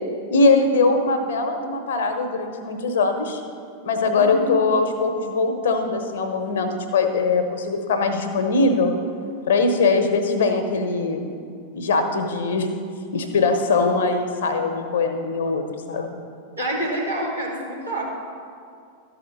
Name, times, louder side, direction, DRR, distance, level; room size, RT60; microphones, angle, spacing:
voice 1, 0.3-3.4 3.8-8.9 9.5-11.3 11.7-12.7 13.1-16.2, left 3 dB, 60° left, 6 dB, 1.0 m, -21 dB
voice 2, 4.2-4.5 16.6-18.2, right 1 dB, 85° right, -6 dB, 2.4 m, -27 dB
12.5 x 4.9 x 6.5 m, 2.3 s
figure-of-eight pair, 90°, 0 cm